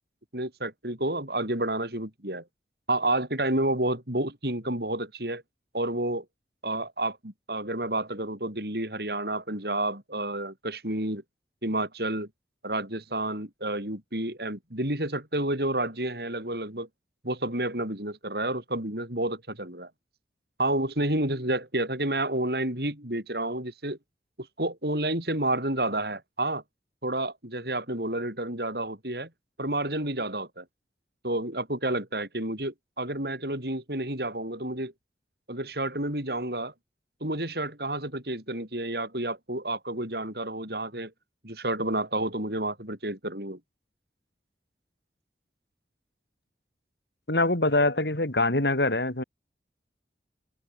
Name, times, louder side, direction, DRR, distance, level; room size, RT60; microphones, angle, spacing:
voice 1, 0.3-2.4 2.9-5.4 5.7-6.2 6.6-11.2 11.6-12.3 12.6-16.9 17.2-19.9 20.6-24.0 24.6-26.6 27.0-29.3 29.6-30.6 31.2-34.9 35.5-36.7 37.2-41.1 41.4-43.6, right 1 dB, 60° right, 7.2 m, -30 dB
voice 2, 47.3-49.2, left 2 dB, 70° left, 4.5 m, -24 dB
head